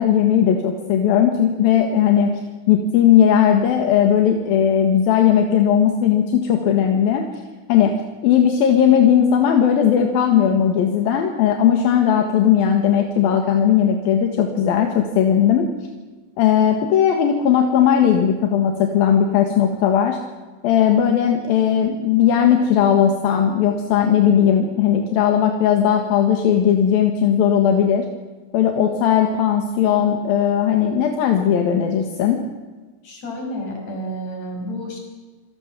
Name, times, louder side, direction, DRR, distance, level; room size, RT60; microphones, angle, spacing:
voice 1, 0.0-2.3 2.7-7.2 7.7-7.9 8.2-15.7 16.4-20.2 20.6-28.1 28.5-32.4, left 9 dB, 75° left, 4 dB, 3.4 m, -17 dB
voice 2, 33.0-35.0, equal, 45° left, 2 dB, 6.8 m, -30 dB
26.0 x 18.5 x 7.3 m, 1.3 s
omnidirectional pair, 4.3 m